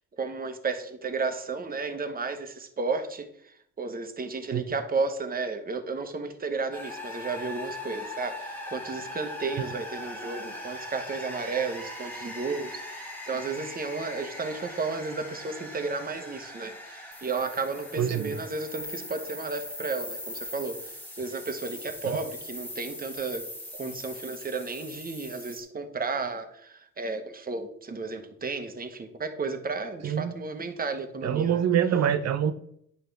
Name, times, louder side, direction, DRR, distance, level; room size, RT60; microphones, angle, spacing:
voice 1, 0.2-3.3 3.8-20.8 21.2-23.4 23.7-31.5, right 4 dB, 30° right, 7 dB, 1.1 m, -33 dB
sound 1, 6.7-25.6, left 1 dB, 5° left, 1.6 m, -40 dB
voice 2, 18.0-18.4 22.0-22.2 30.0-30.3 31.2-32.5, right 9 dB, 60° right, 12 dB, 0.8 m, -25 dB
9.3 x 5.5 x 3.4 m, 0.70 s
cardioid pair, 90°, 30 cm